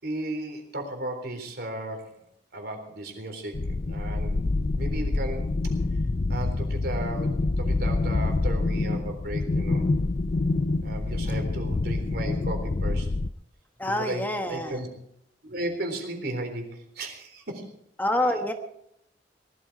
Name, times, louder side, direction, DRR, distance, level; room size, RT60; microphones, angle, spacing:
voice 1, 0.0-2.2 2.5-4.4 4.7-5.5 6.3-9.8 10.8-13.1 13.9-14.9 15.4-17.7, right 1 dB, 65° right, 5 dB, 3.7 m, -35 dB
sound 1, 3.5-13.3, left 2 dB, 45° left, 0.5 m, -26 dB
voice 2, 13.8-14.8 18.0-18.5, left 1 dB, 10° left, 5 dB, 1.2 m, -27 dB
18.5 x 13.0 x 4.7 m, 0.73 s
head